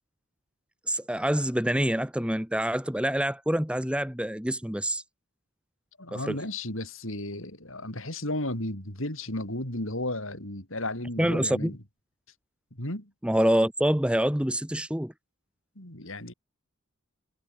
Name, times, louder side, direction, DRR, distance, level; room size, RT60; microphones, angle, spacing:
voice 1, 0.9-5.0 6.1-6.4 11.2-11.7 13.2-15.1, equal, 5° right, 1.5 m, -26 dB
voice 2, 6.0-11.8 12.7-13.1 15.7-16.3, left 1 dB, 60° left, 6.8 m, -34 dB
head